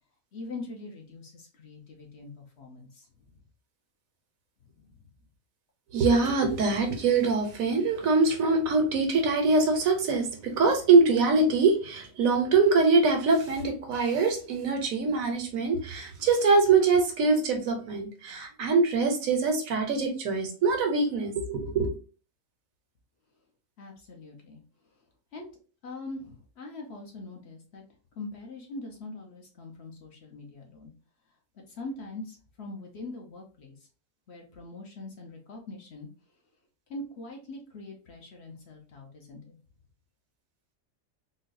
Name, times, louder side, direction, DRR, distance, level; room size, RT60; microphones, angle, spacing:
voice 1, 0.3-3.1 4.7-5.0 23.8-24.6 25.3-25.5 25.8-27.8 28.2-30.9 31.7-33.8 34.3-36.1 36.9-39.6, left 2 dB, 55° left, 0 dB, 1.0 m, -42 dB
voice 2, 5.9-21.9, right 4 dB, 75° right, 4 dB, 1.2 m, -23 dB
3.9 x 2.2 x 2.5 m, 0.38 s
omnidirectional pair, 1.5 m